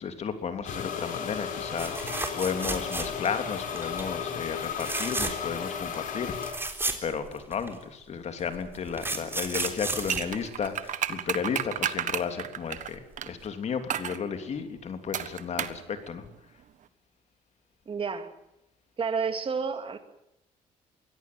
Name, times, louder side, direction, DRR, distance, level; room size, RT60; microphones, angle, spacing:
voice 1, 0.0-6.6 7.0-13.0 13.3-16.3, left 6 dB, 50° left, 8 dB, 3.2 m, -33 dB
sound 1, 0.6-6.5, left 7 dB, 70° left, 5.7 m, -34 dB
sound 2, 1.8-3.4 3.7-4.1 4.7-5.6 5.9-6.0 6.2-7.7 8.5-11.1 13.0-13.1 13.4-13.5, right 2 dB, 15° right, 3.7 m, -33 dB
sound 3, 9.5-13.3 13.9-14.2 15.1-15.8 16.1-16.2, right 10 dB, 60° right, 1.5 m, -32 dB
voice 2, 17.9-18.3 19.0-20.0, right 5 dB, 40° right, 8 dB, 2.7 m, -30 dB
23.5 x 17.0 x 9.5 m, 0.85 s
cardioid pair, 100°, 14 cm